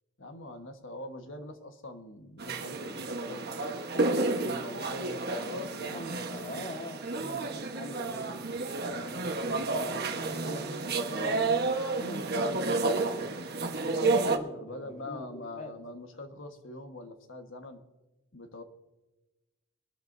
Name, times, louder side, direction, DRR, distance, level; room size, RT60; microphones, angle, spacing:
voice 1, 0.2-3.5 4.2-6.6 14.5-17.8 18.3-18.6, left 1 dB, 60° left, 1.4 m, -44 dB
sound 1, 2.4-14.4, right 3 dB, 50° right, 1.2 m, -31 dB
voice 2, 5.8-11.7 11.9-13.4 13.8-15.8, left 1 dB, 35° left, 1.6 m, -44 dB
23.0 x 13.0 x 2.7 m
head